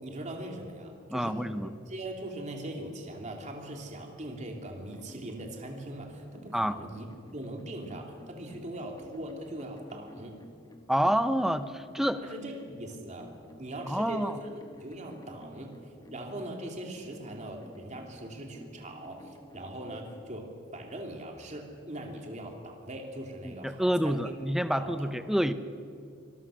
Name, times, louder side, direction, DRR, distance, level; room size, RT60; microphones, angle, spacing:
voice 1, 0.0-1.4 1.9-7.1 7.3-10.3 12.2-13.3 13.6-14.5 14.8-15.7 16.1-20.5 20.7-24.3 24.7-25.1, right 1 dB, 35° right, 1 dB, 2.8 m, -40 dB
voice 2, 1.1-1.7 6.5-6.8 10.9-12.2 13.9-14.4 23.4-25.5, equal, ahead, 11 dB, 0.8 m, -28 dB
sound 1, 4.9-20.3, equal, 20° left, 1.6 m, -52 dB
25.0 x 21.0 x 6.3 m, 2.4 s
head